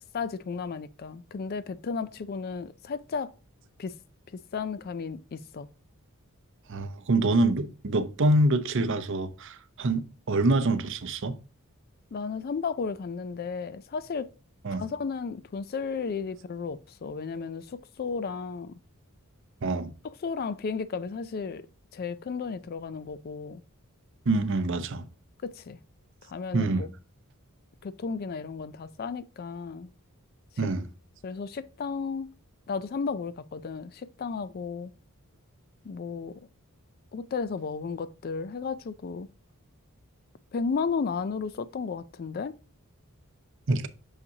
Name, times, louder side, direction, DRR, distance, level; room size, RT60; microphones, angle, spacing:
voice 1, 0.1-3.3 3.8-3.9 4.3-5.7 12.1-14.3 14.8-18.8 20.2-21.7 21.9-23.6 25.4-25.8 26.2-26.9 27.8-29.9 31.2-32.3 32.7-34.9 35.8-36.4 37.1-39.3 40.5-42.5, left 5 dB, 45° left, 0.3 m, -34 dB
voice 2, 6.7-11.4 14.6-14.8 19.6-19.9 24.3-25.0 26.5-26.9 30.6-30.8 43.7-43.9, right 2 dB, 55° right, 0.6 m, -25 dB
6.6 x 5.5 x 2.7 m
head